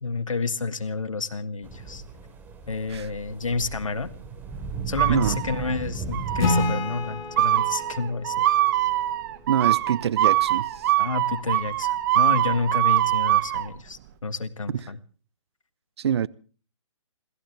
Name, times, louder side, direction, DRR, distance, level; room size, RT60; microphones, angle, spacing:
voice 1, 0.0-2.0 2.7-4.1 4.9-8.4 11.0-15.0, left 4 dB, 80° left, 1.7 m, -30 dB
sound 1, 1.6-6.7, right 5 dB, 10° right, 3.3 m, -34 dB
sound 2, 5.0-5.7 6.1-6.7 7.4-13.7, right 14 dB, 40° right, 1.4 m, -23 dB
voice 2, 5.1-5.4 9.5-10.8 14.7-14.8 16.0-16.3, right 9 dB, 55° right, 0.7 m, -25 dB
Acoustic guitar / Strum, 6.4-9.8, left 3 dB, 20° left, 4.2 m, -30 dB
28.0 x 15.0 x 3.3 m
figure-of-eight pair, 140°, 17 cm